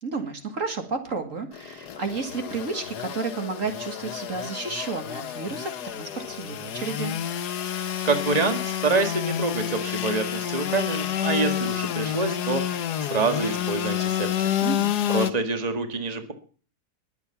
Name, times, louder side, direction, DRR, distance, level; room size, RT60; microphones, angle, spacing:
voice 1, 0.0-7.2 14.6-14.9, right 4 dB, 50° right, 6 dB, 2.1 m, -32 dB
Engine / Sawing, 1.5-15.3, left 10 dB, 75° left, 1.5 m, -29 dB
voice 2, 8.0-14.5 15.1-16.3, right 3 dB, 25° right, 7 dB, 1.8 m, -26 dB
21.5 x 8.2 x 5.8 m, 0.41 s
omnidirectional pair, 1.8 m